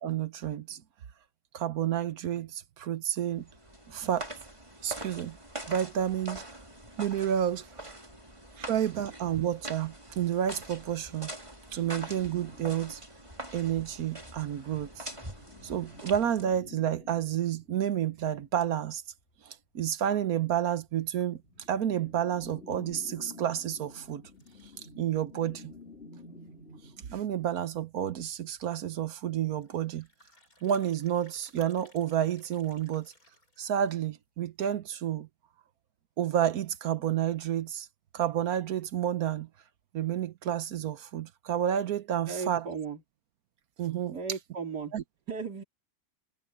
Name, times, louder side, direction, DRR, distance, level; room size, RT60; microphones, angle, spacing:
voice 1, 0.0-0.8 1.5-3.4 3.9-4.3 4.8-5.4 5.7-6.4 7.0-7.7 8.6-11.3 11.7-13.0 13.5-15.1 15.6-19.0 19.5-21.4 21.7-24.2 25.0-25.7 27.1-30.1 30.6-33.1 33.6-35.3 36.2-37.9 38.1-39.5 39.9-42.6 43.8-44.2 44.9-45.0, right 10 dB, 65° right, 1.3 m, -30 dB
sound 1, 3.3-16.6, right 1 dB, 20° right, 4.1 m, -44 dB
sound 2, 11.7-13.5 14.0-18.9 20.9-27.5, left 3 dB, 40° left, 6.0 m, -51 dB
sound 3, 24.3-25.3 25.7-25.8 26.0-26.1 26.6-26.7 27.9-28.0 28.3-28.5 29.6-34.2, left 1 dB, 60° left, 8.4 m, -62 dB
voice 2, 42.3-43.0 44.1-44.9 45.3-45.6, right 5 dB, 90° right, 3.1 m, -36 dB
omnidirectional pair, 1.7 m